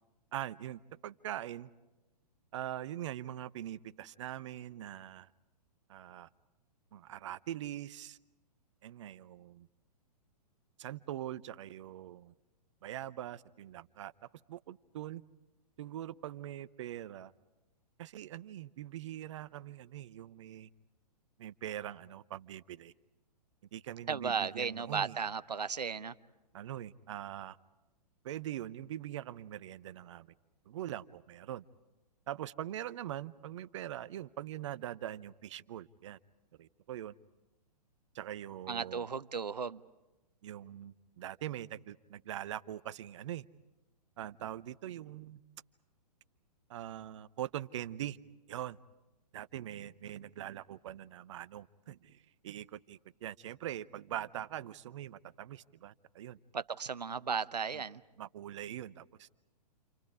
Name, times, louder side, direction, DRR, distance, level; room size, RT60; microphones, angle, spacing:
voice 1, 0.3-1.7 2.5-5.3 5.9-6.3 6.9-8.2 8.8-9.7 10.8-12.3 12.8-14.1 14.5-15.2 15.8-17.3 18.0-20.7 21.4-22.9 23.7-25.2 26.5-27.6 28.2-30.3 30.7-31.6 32.3-36.2 36.6-37.1 38.1-39.1 40.4-43.5 44.2-45.4 46.7-48.2 48.5-48.8 49.3-56.4 57.7-57.8 58.2-59.3, right 12 dB, 45° right, 0.8 m, -42 dB
voice 2, 24.1-26.1 38.7-39.8 56.5-58.0, right 6 dB, 75° right, 0.8 m, -35 dB
29.5 x 27.5 x 4.9 m
figure-of-eight pair, 115°, 21 cm